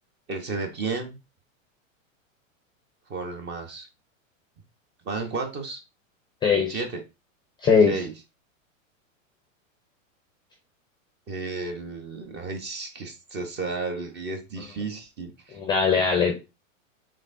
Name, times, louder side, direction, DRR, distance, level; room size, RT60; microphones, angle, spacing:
voice 1, 0.3-1.2 3.1-3.9 5.0-5.8 6.7-7.0 7.9-8.1 11.3-15.6, right 3 dB, 25° right, 5 dB, 1.0 m, -33 dB
voice 2, 6.4-6.8 7.6-8.0 15.5-16.4, left 5 dB, 10° left, 2 dB, 0.6 m, -20 dB
5.1 x 3.7 x 2.6 m, 0.27 s
hypercardioid pair, 140°, 40 cm